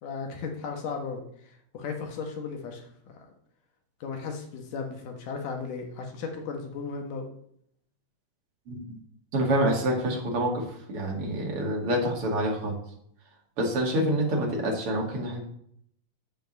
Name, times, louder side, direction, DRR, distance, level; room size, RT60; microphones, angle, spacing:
voice 1, 0.0-2.9 3.1-3.3 4.0-7.3, left 5 dB, 80° left, 3 dB, 3.1 m, -35 dB
voice 2, 9.3-12.8 13.6-15.4, right 1 dB, 45° right, 0 dB, 2.9 m, -27 dB
7.6 x 7.2 x 6.6 m, 0.69 s
omnidirectional pair, 3.7 m